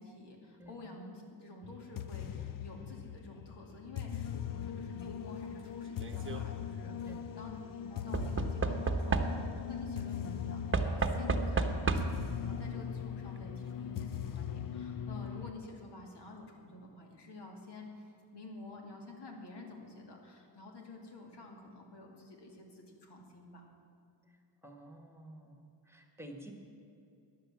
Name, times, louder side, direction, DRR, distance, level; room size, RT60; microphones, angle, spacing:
voice 1, 0.0-23.6, left 2 dB, 70° left, 0 dB, 2.6 m, -50 dB
sound 1, 1.6-15.5, left 9 dB, 50° left, 0.6 m, -40 dB
Knock / Wood, 5.9-6.4 8.1-9.7 10.7-12.3 13.4-13.5 13.7-13.8, right 3 dB, 30° right, 1.0 m, -32 dB
voice 2, 24.6-25.6 25.9-26.5, right 1 dB, 5° right, 3 dB, 1.4 m, -50 dB
14.5 x 10.0 x 7.4 m, 2.6 s
wide cardioid pair, 120°, 42 cm